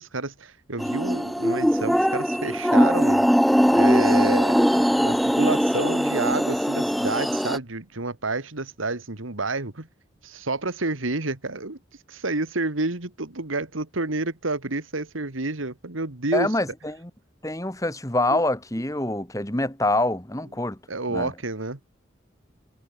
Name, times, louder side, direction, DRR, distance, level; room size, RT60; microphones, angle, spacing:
voice 1, 0.0-3.3 3.7-9.9 10.2-11.8 12.1-16.5 18.3-18.4 20.9-21.8, right 3 dB, 90° right, 2.2 m, -29 dB
sound 1, 0.8-7.6, equal, ahead, 1.9 m, -21 dB
voice 2, 16.3-17.1 17.4-20.8 21.1-21.3, left 1 dB, 15° left, 1.9 m, -25 dB
head